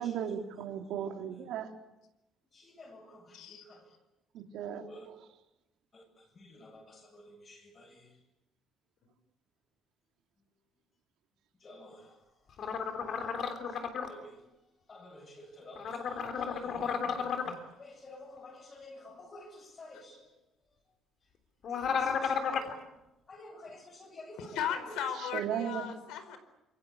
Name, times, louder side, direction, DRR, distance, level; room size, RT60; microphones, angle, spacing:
voice 1, 0.0-1.7 4.3-5.2 25.3-25.9, right 9 dB, 75° right, 4 dB, 3.6 m, -36 dB
voice 2, 2.5-3.8 4.7-5.1 5.9-6.0 6.4-8.0 11.6-12.1 13.1-13.6 14.1-14.3 14.9-17.5 17.8-20.2 21.7-22.7 23.3-24.6 24.9-25.0, left 1 dB, 30° left, 4 dB, 7.9 m, -51 dB
voice 3, 3.3-3.6 17.3-17.8 19.9-20.0 24.4-26.4, left 8 dB, 85° left, 10 dB, 4.4 m, -37 dB
sound 1, 12.6-14.1 15.8-17.5 21.6-22.7, left 6 dB, 45° left, 3.4 m, -33 dB
27.0 x 24.5 x 8.5 m, 0.96 s
cardioid pair, 165°, 0 cm